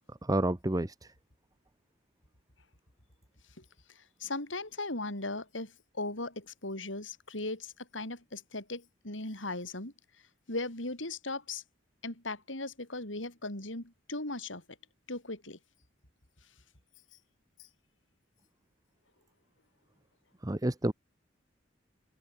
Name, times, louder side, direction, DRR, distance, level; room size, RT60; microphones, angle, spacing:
voice 1, 0.2-1.1 20.4-20.9, right 1 dB, 20° right, 0.9 m, -29 dB
voice 2, 4.0-9.9 10.5-11.6 12.0-14.6 15.1-15.6, left 2 dB, 85° left, 7.1 m, -38 dB
head